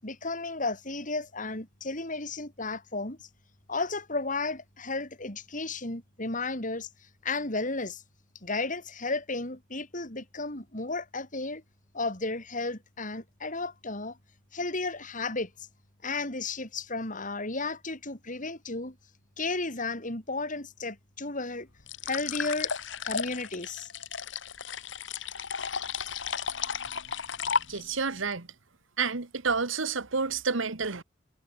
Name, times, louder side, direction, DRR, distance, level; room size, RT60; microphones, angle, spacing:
voice 1, 0.0-3.3 3.7-6.9 7.2-8.0 8.4-11.6 11.9-14.2 14.5-15.7 16.0-19.0 19.4-21.7 22.0-22.7 23.0-23.9, left 3 dB, 45° left, 5.5 m, -33 dB
sound 1, 21.9-28.1, left 6 dB, 65° left, 1.6 m, -34 dB
voice 2, 27.7-28.5 29.0-31.0, right 5 dB, 90° right, 1.6 m, -29 dB
head